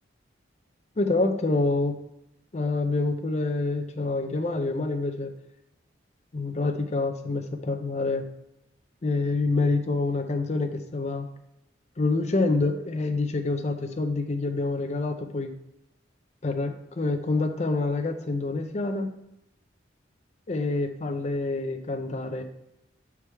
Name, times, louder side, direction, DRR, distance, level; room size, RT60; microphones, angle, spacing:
voice 1, 1.0-2.0 2.5-5.3 6.3-8.2 9.0-11.3 12.0-15.5 16.4-19.1 20.5-22.4, left 3 dB, 35° left, 5 dB, 0.5 m, -27 dB
6.0 x 4.7 x 3.4 m, 0.85 s
head